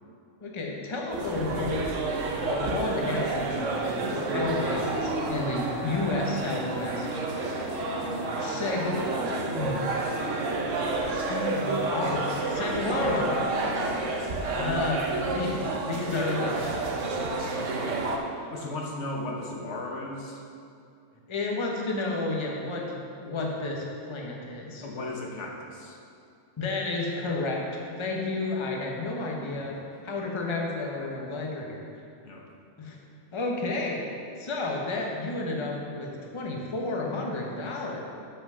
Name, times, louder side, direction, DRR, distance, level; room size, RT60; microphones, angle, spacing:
voice 1, 0.4-2.0 2.4-7.1 8.4-9.0 9.3-9.9 11.1-13.4 14.6-16.7 21.3-24.8 26.6-29.8 30.0-31.8 32.8-33.0 33.3-34.0 34.4-38.0, left 2 dB, 25° left, -1 dB, 0.9 m, -31 dB
sound 1, 1.1-18.2, right 3 dB, 85° right, 1.2 m, -30 dB
voice 2, 12.7-14.3 18.5-20.4 24.8-26.0 29.5-29.8 32.2-32.5, left 2 dB, 70° left, 0 dB, 1.3 m, -36 dB
7.5 x 5.5 x 5.5 m, 2.4 s
omnidirectional pair, 1.3 m